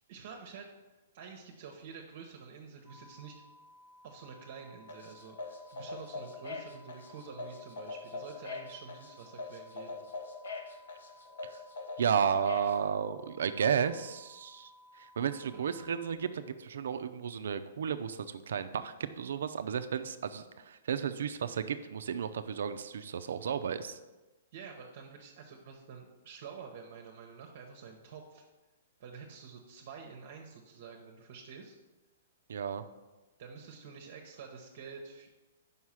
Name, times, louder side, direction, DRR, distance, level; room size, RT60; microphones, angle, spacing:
voice 1, 0.1-0.7 1.1-3.4 4.0-10.1 15.4-15.7 24.5-28.5 29.0-31.8 33.4-35.3, right 6 dB, 55° right, 2 dB, 0.9 m, -48 dB
sound 1, 2.9-16.1, left 1 dB, 30° left, 1.2 m, -58 dB
sound 2, 4.9-12.7, left 3 dB, 85° left, 1.1 m, -42 dB
voice 2, 12.0-14.7 15.0-24.0 32.5-32.8, right 7 dB, 75° right, 10 dB, 0.5 m, -33 dB
5.6 x 4.7 x 5.8 m, 1.1 s
hypercardioid pair, 150°, 0 cm